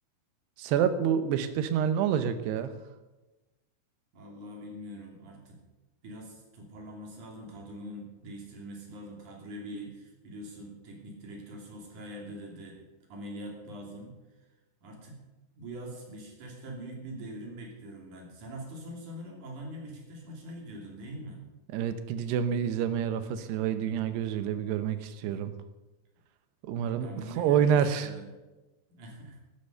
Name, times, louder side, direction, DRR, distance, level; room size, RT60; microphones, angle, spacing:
voice 1, 0.6-2.7 21.7-25.5 26.6-27.1 27.4-28.1, right 8 dB, 85° right, 11 dB, 3.1 m, -27 dB
voice 2, 4.1-5.6 6.0-12.8 13.1-14.2 14.8-15.2 15.5-21.4 25.2-25.3 27.0-28.3 28.9-29.4, right 1 dB, 50° right, 0 dB, 4.1 m, -43 dB
13.0 x 10.5 x 6.7 m, 1.1 s
omnidirectional pair, 4.7 m